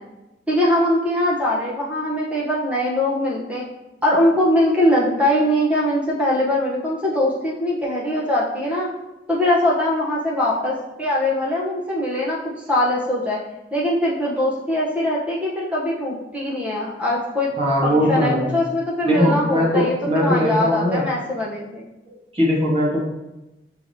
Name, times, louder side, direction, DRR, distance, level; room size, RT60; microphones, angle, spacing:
voice 1, 0.5-3.6 4.0-8.9 9.3-12.4 12.7-13.4 13.7-17.5 17.8-21.8, left 1 dB, 5° right, -5 dB, 0.8 m, -21 dB
voice 2, 17.6-18.6 19.1-21.0 22.1-23.0, left 1 dB, 30° right, -4 dB, 1.1 m, -20 dB
5.6 x 3.2 x 2.7 m, 0.99 s
head